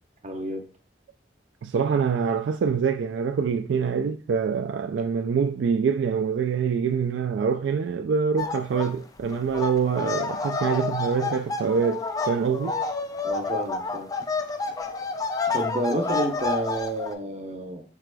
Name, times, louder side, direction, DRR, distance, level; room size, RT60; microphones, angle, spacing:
voice 1, 0.2-0.6 13.2-14.1 15.5-17.8, right 1 dB, 40° right, 0.7 m, -30 dB
voice 2, 1.6-12.8, right 6 dB, 75° right, 0.3 m, -25 dB
sound 1, 8.4-8.9 9.2-17.1, left 4 dB, 20° left, 0.3 m, -29 dB
4.8 x 4.6 x 2.3 m
head